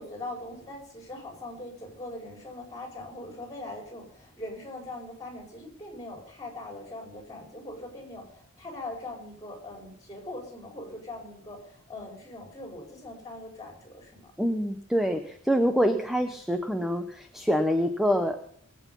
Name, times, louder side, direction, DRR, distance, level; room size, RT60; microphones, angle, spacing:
voice 1, 0.0-14.7, left 2 dB, 15° left, 1 dB, 4.7 m, -41 dB
voice 2, 14.4-18.4, equal, ahead, 6 dB, 0.9 m, -26 dB
21.0 x 8.4 x 5.5 m, 0.65 s
head